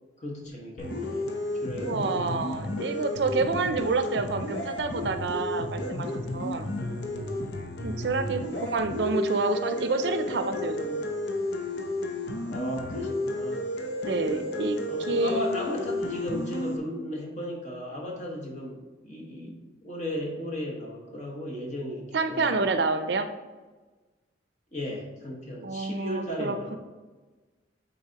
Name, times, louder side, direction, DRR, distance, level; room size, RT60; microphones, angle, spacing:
voice 1, 0.2-1.3 1.6-2.3 6.8-7.4 7.9-8.5 12.5-13.7 14.9-19.6 19.8-22.7 24.7-26.8, equal, 40° left, -1 dB, 1.4 m, -36 dB
sound 1, 0.8-16.8, left 1 dB, 70° left, 0.8 m, -32 dB
voice 2, 1.8-6.7 7.8-11.0 14.1-14.8 15.1-15.4 22.1-23.3 25.6-26.8, right 3 dB, 65° right, 9 dB, 0.5 m, -28 dB
8.7 x 4.1 x 2.9 m, 1.3 s
head